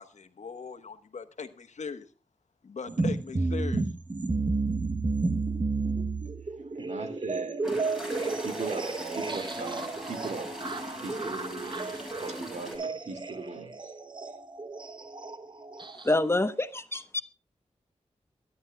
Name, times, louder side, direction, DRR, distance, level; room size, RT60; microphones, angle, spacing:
voice 1, 0.0-2.1 2.6-3.9, left 5 dB, 75° left, 1.2 m, -39 dB
sound 1, 2.9-16.2, right 3 dB, 40° right, 0.9 m, -32 dB
voice 2, 6.7-7.6 8.4-10.5 11.0-11.9 12.2-13.7, right 3 dB, 70° right, 2.2 m, -39 dB
sound 2, 7.6-12.8, left 1 dB, 5° right, 6.3 m, -41 dB
voice 3, 16.0-17.2, left 2 dB, 20° left, 0.9 m, -26 dB
23.0 x 11.0 x 2.3 m
wide cardioid pair, 85°, 12 cm